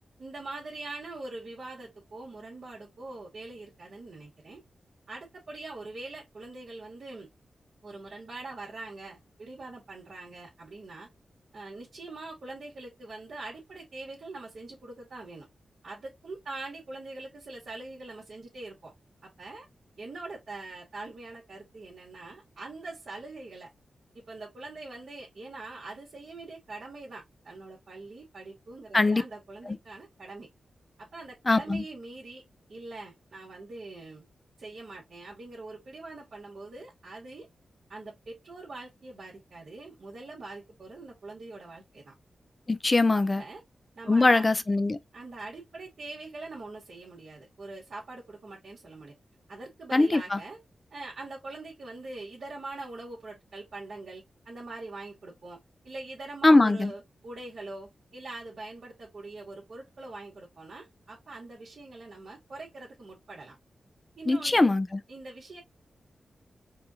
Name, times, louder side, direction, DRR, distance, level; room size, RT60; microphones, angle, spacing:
voice 1, 0.2-4.6 5.1-7.3 7.8-11.1 11.5-15.5 15.8-18.9 19.2-19.7 20.0-23.7 24.1-30.5 31.0-32.4 32.7-34.2 34.6-37.5 37.9-42.1 43.1-43.6 43.9-44.4 45.1-49.1 49.5-50.6 50.9-55.6 55.8-63.6 64.2-64.7 65.1-65.6, right 2 dB, 55° right, 2.0 m, -43 dB
voice 2, 31.5-31.8 42.7-43.4 44.1-45.0 49.9-50.4 56.4-56.9 64.3-65.0, left 2 dB, 25° left, 0.5 m, -22 dB
4.8 x 2.6 x 2.8 m
wide cardioid pair, 140°, 0 cm